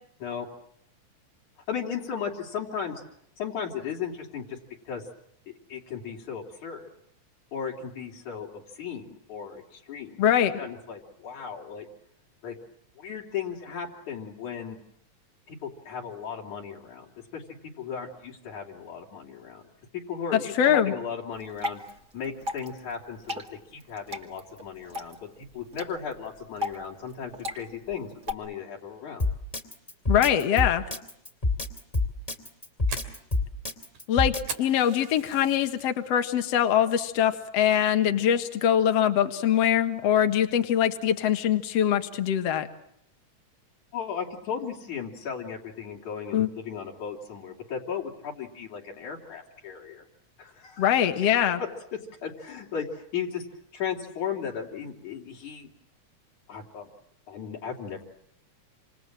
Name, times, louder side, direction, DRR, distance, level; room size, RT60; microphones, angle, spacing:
voice 1, 1.7-3.0 3.4-4.6 4.9-5.0 5.5-6.9 7.5-10.2 10.6-11.9 12.4-12.6 13.0-14.8 15.5-17.1 17.3-17.4 17.8-19.6 19.9-21.8 22.1-29.3 43.9-50.0 50.4-50.8 51.2-51.3 52.2-53.5 53.7-55.7 56.5-56.9 57.3-58.0, left 7 dB, 80° left, -2 dB, 4.7 m, -36 dB
voice 2, 10.2-10.5 20.6-20.9 30.1-30.8 34.1-42.7 46.3-46.5 50.8-51.6, left 10 dB, 60° left, 7 dB, 2.5 m, -23 dB
Water / Drip, 21.3-28.3, left 2 dB, 25° right, 2.2 m, -38 dB
Drum kit, 29.2-34.5, left 3 dB, 10° left, 2.6 m, -27 dB
Fire, 32.5-35.9 36.3-36.7 37.0-37.2 37.7-38.0, right 5 dB, 80° right, 4.4 m, -40 dB
28.0 x 27.5 x 7.5 m, 0.74 s
omnidirectional pair, 3.4 m